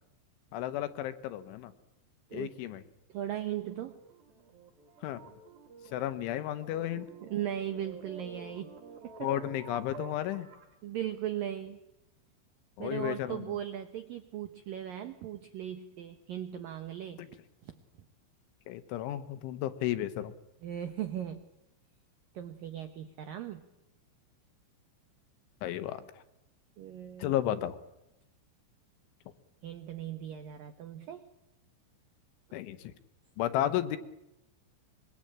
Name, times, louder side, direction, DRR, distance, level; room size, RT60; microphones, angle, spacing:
voice 1, 0.5-1.7 2.3-2.8 5.0-5.2 5.9-7.1 9.2-10.5 12.8-13.5 18.7-20.3 25.6-26.0 27.2-27.8 32.5-32.9 33.4-34.0, left 12 dB, 75° left, 11 dB, 3.4 m, -33 dB
voice 2, 3.1-4.0 7.0-9.1 10.8-11.8 12.8-17.2 17.6-17.8 20.6-21.5 22.3-23.6 26.8-27.3 29.6-31.3, right 11 dB, 80° right, 9 dB, 2.0 m, -38 dB
sound 1, 3.6-10.7, right 6 dB, 55° right, 3.7 m, -50 dB
25.5 x 22.5 x 8.9 m, 0.90 s
omnidirectional pair, 5.8 m